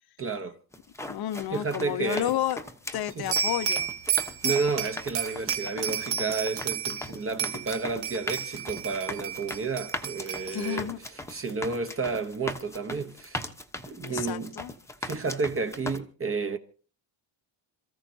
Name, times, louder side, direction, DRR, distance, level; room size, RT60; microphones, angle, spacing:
voice 1, 0.2-0.6 1.5-2.3 3.2-3.3 4.2-10.9 11.3-13.5 13.9-14.6 15.0-16.6, right 4 dB, 25° right, 0.9 m, -31 dB
sound 1, 0.7-16.0, left 1 dB, 5° left, 0.9 m, -39 dB
voice 2, 1.1-2.6 2.9-3.9 4.4-4.6 10.5-11.0 14.0-14.7, left 12 dB, 50° left, 0.7 m, -31 dB
sound 2, 3.3-7.1 7.4-10.8, right 7 dB, 55° right, 1.7 m, -31 dB
27.5 x 14.5 x 2.7 m
cardioid pair, 150°, 49 cm